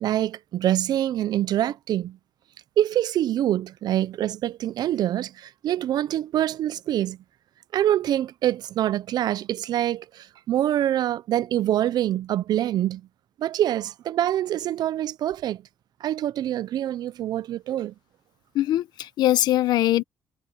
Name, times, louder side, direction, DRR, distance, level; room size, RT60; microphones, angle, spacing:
voice 1, 0.0-2.2 2.8-7.2 7.7-13.0 13.4-15.6 16.0-17.9, right 12 dB, 75° right, 0.7 m, -25 dB
voice 2, 18.5-20.0, left 14 dB, 80° left, 1.3 m, -22 dB
supercardioid pair, 55°, 7 cm